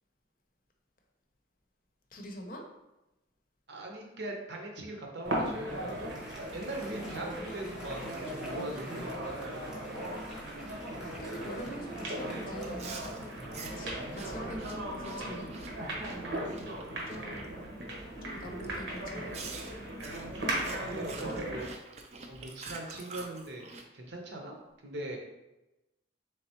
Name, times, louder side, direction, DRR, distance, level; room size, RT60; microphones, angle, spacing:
voice 1, 2.1-2.6 7.4-7.6 11.0-13.0 13.7-15.5 17.1-17.5 18.2-19.4, equal, 50° left, 2 dB, 0.6 m, -44 dB
voice 2, 3.7-5.9 6.5-9.6 20.8-21.7 22.3-23.7 23.9-24.6 24.8-25.2, right 1 dB, 70° right, 1 dB, 0.7 m, -41 dB
sound 1, 5.2-21.7, right 1 dB, 85° right, 1.0 m, -37 dB
Applause, 5.3-14.3, equal, 5° right, 0.8 m, -50 dB
Chewing mastication, 12.6-17.4 17.8-18.1 18.6-18.7 19.3-23.8, right 4 dB, 35° right, 0.4 m, -46 dB
3.8 x 3.3 x 2.9 m, 0.99 s
head